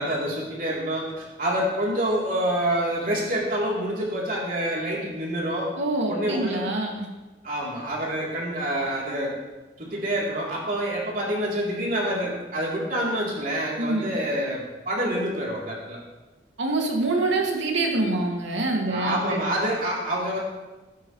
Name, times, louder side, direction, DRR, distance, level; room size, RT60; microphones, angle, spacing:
voice 1, 0.0-5.7 6.1-6.6 7.4-9.3 9.8-16.0 18.9-20.4, right 1 dB, 45° right, -4 dB, 3.6 m, -27 dB
voice 2, 5.8-7.1 13.8-14.1 16.6-19.4, right 2 dB, 85° right, 0 dB, 2.5 m, -25 dB
15.5 x 12.0 x 3.3 m, 1.1 s
head